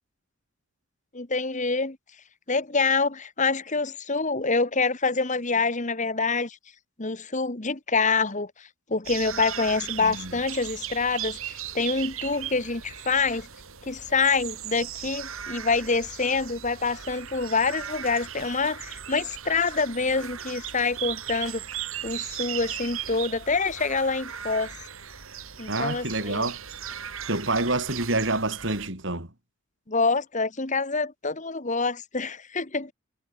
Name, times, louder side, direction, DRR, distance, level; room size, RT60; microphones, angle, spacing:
voice 1, 1.1-2.0 2.5-6.6 7.0-13.5 13.8-21.6 22.0-24.7 25.6-26.4 29.9-32.9, left 4 dB, 35° left, 1.5 m, -26 dB
sound 1, 9.0-28.9, right 10 dB, 70° right, 3.5 m, -37 dB
voice 2, 10.0-10.3 25.7-26.6 27.3-29.3, right 2 dB, 55° right, 4.5 m, -27 dB
head